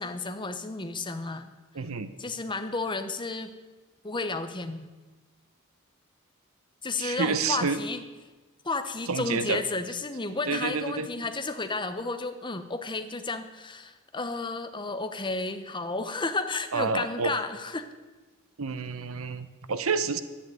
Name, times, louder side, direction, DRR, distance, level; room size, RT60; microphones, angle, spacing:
voice 1, 0.0-1.5 2.2-3.5 4.0-4.9 6.8-8.0 8.6-17.9, left 3 dB, 25° left, 8 dB, 1.0 m, -32 dB
voice 2, 1.7-2.1 7.0-7.8 9.1-9.6 10.5-11.1 16.7-17.4 18.6-20.2, right 4 dB, 80° right, 11 dB, 0.9 m, -29 dB
11.0 x 10.0 x 9.3 m, 1.2 s
head